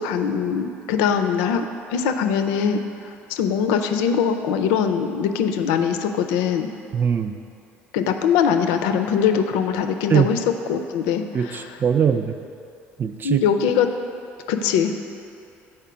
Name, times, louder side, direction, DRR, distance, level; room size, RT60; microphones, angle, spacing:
voice 1, 0.0-2.8 3.3-6.7 7.9-10.4 10.7-11.8 13.2-13.9 14.5-14.9, left 7 dB, 80° left, 7 dB, 0.4 m, -22 dB
voice 2, 6.9-7.3 10.1-10.3 11.3-12.4 13.0-13.4, right 7 dB, 35° right, 8 dB, 0.4 m, -21 dB
5.0 x 4.4 x 5.7 m, 2.6 s
hypercardioid pair, 70°, 6 cm